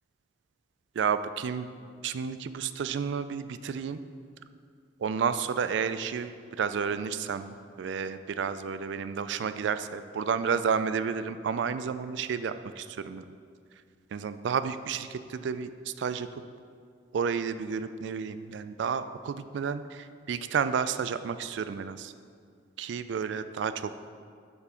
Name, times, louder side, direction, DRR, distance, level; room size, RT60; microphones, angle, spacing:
voice 1, 1.0-1.7 2.0-4.0 5.0-13.2 14.1-16.3 17.1-22.1 22.8-23.7, right 6 dB, 65° right, 12 dB, 0.3 m, -31 dB
6.9 x 4.7 x 5.6 m, 2.2 s
head